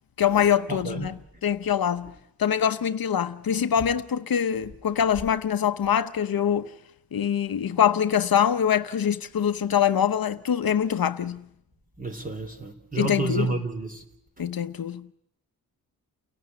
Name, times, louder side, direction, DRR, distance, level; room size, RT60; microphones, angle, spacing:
voice 1, 0.2-2.1 2.4-6.7 7.1-11.4 13.0-13.6 14.4-15.1, left 9 dB, 65° left, 0.9 m, -24 dB
voice 2, 0.7-1.1 12.0-14.0, right 3 dB, 20° right, 3.5 m, -30 dB
29.5 x 17.0 x 9.8 m
wide cardioid pair, 175°, 39 cm